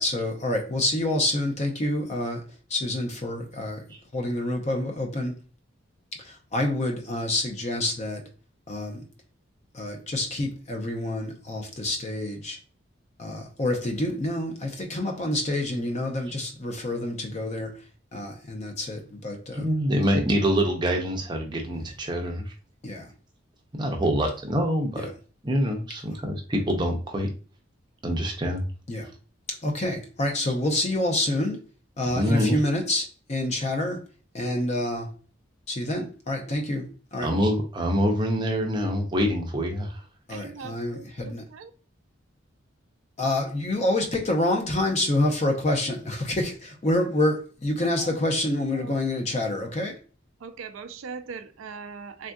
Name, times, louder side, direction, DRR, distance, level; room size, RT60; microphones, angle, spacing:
voice 1, 0.0-2.4 2.7-3.8 4.1-5.4 6.2-8.2 8.7-9.0 9.7-12.6 13.2-17.7 18.1-19.6 22.8-23.1 25.0-25.1 28.9-29.1 29.5-31.6 32.0-34.0 34.3-35.1 35.7-37.3 40.3-41.5 43.2-50.0, left 1 dB, 35° left, 0.6 m, -27 dB
voice 2, 19.5-22.5 23.7-25.1 25.4-27.3 28.0-28.6 32.2-32.6 37.2-40.0, equal, 20° right, 0.6 m, -25 dB
voice 3, 40.3-41.7 48.0-48.1 48.7-49.3 50.4-52.3, right 5 dB, 90° right, 0.4 m, -41 dB
3.5 x 2.6 x 2.2 m
head